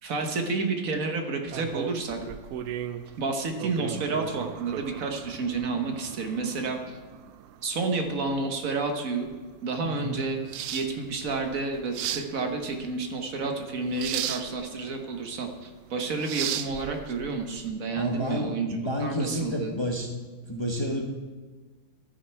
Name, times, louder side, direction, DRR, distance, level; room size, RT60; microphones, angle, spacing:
voice 1, 0.0-2.2 3.2-7.0 7.6-9.3 9.6-10.4 10.7-18.7 19.0-19.7, right 3 dB, 70° right, 4 dB, 1.5 m, -30 dB
sound 1, 1.5-17.7, right 10 dB, 90° right, 1.1 m, -37 dB
voice 2, 9.8-10.2 17.9-20.1 20.5-21.0, equal, 25° left, 0 dB, 0.8 m, -30 dB
13.0 x 6.4 x 4.6 m, 1.4 s
omnidirectional pair, 1.5 m